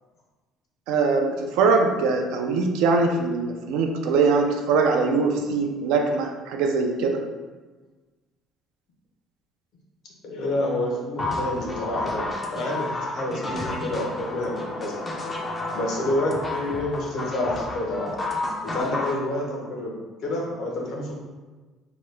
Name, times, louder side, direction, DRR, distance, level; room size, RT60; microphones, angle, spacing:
voice 1, 0.9-7.3, right 4 dB, 85° right, 3 dB, 0.4 m, -22 dB
voice 2, 10.2-14.9 15.7-18.3 18.6-21.1, left 1 dB, 65° left, -2 dB, 0.8 m, -28 dB
sound 1, 11.2-19.2, left 2 dB, 20° left, 0.4 m, -31 dB
2.9 x 2.2 x 3.2 m, 1.3 s
cardioid pair, 135°, 0 cm